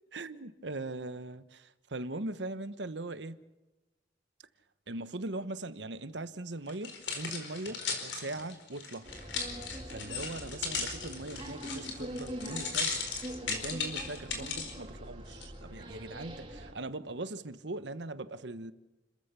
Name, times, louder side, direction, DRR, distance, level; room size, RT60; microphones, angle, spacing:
voice 1, 0.1-3.4 4.9-9.1 9.9-13.0 13.5-18.7, right 2 dB, 70° right, 1.1 m, -40 dB
sound 1, 6.7-14.7 15.3-15.4, left 5 dB, 85° left, 4.6 m, -36 dB
sound 2, 9.0-16.7, right 1 dB, 25° right, 3.5 m, -44 dB
30.0 x 14.0 x 6.9 m
head